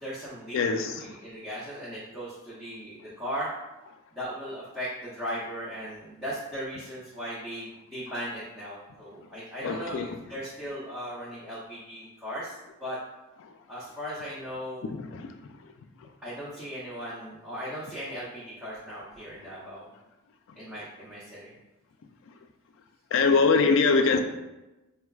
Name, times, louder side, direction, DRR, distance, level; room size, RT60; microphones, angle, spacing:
voice 1, 0.0-0.6 1.0-3.5 4.1-13.0 13.7-14.9 16.2-19.9 20.6-21.5, equal, 10° right, -11 dB, 0.7 m, -37 dB
voice 2, 0.5-1.1 9.6-10.1 14.9-15.3 23.1-24.2, left 4 dB, 60° left, 7 dB, 0.3 m, -23 dB
4.3 x 2.2 x 2.3 m, 1.0 s
head